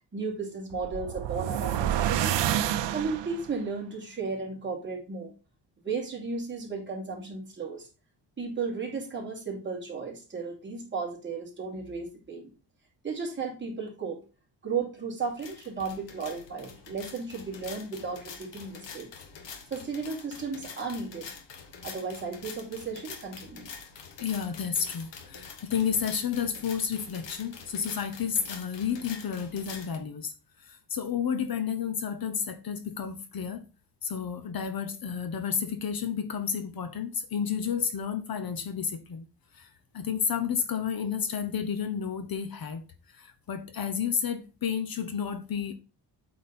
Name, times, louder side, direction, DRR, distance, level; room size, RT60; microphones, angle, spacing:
voice 1, 0.1-2.4 2.9-5.3 5.8-7.9 8.4-12.5 13.0-14.2 14.6-19.1 19.7-21.3 21.8-23.7, right 4 dB, 25° right, 2.7 m, -34 dB
sound 1, 0.7-3.5, right 11 dB, 80° right, 0.7 m, -28 dB
sound 2, 15.2-30.0, left 6 dB, 80° left, 1.4 m, -46 dB
voice 2, 24.2-30.3 30.6-33.6 34.0-39.3 39.5-42.8 43.1-45.7, left 7 dB, 55° left, 0.9 m, -31 dB
8.6 x 4.3 x 4.2 m
wide cardioid pair, 170°, 43 cm